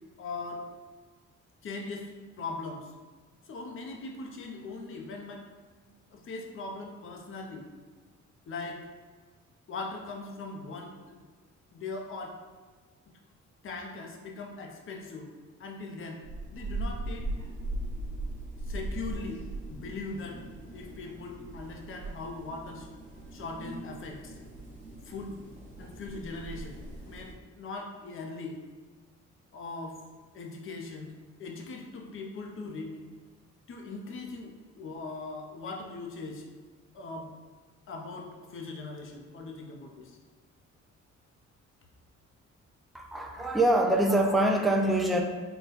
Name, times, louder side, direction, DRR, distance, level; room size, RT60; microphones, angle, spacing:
voice 1, 0.2-0.7 1.6-2.9 3.5-5.5 6.1-7.7 8.5-8.8 9.7-11.2 11.7-12.4 13.6-15.3 15.6-16.2 16.5-17.3 18.6-19.4 19.7-20.4 20.7-22.9 23.3-24.4 25.0-25.4 25.8-26.8 27.1-28.6 29.5-30.0 30.3-33.0 33.7-36.4 36.9-37.3 37.9-40.2, left 3 dB, 45° left, 1 dB, 0.6 m, -40 dB
sound 1, 16.2-27.3, right 2 dB, 25° right, 1.2 m, -39 dB
voice 2, 42.9-45.2, right 1 dB, ahead, 2 dB, 0.4 m, -24 dB
3.9 x 2.2 x 4.1 m, 1.4 s
cardioid pair, 90°, 30 cm